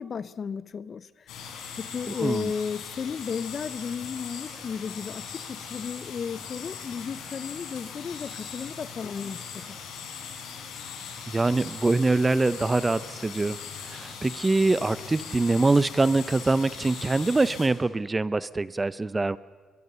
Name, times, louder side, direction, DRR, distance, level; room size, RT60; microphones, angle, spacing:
voice 1, 0.0-1.5 1.8-9.9, left 6 dB, 45° left, 0.8 m, -34 dB
sound 1, 1.3-17.7, left 6 dB, 90° left, 4.6 m, -40 dB
voice 2, 11.3-13.6 13.8-19.4, right 3 dB, 20° right, 0.6 m, -24 dB
22.5 x 22.0 x 6.9 m
cardioid pair, 90°, 0 cm